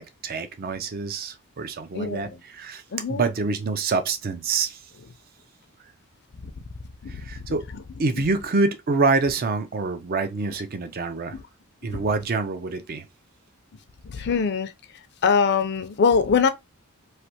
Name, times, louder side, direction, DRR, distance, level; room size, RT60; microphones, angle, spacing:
voice 1, 0.0-2.8 3.1-4.8 7.1-7.7 8.0-11.4 11.8-13.1, right 3 dB, 45° right, 0.5 m, -26 dB
voice 2, 1.9-2.4 2.9-3.2 6.4-6.5 7.0-7.2 7.7-7.8 8.1-8.2 11.3-11.4 11.9-12.0 14.0-14.7 15.2-16.5, left 5 dB, 50° left, 0.5 m, -23 dB
3.2 x 2.5 x 2.8 m
head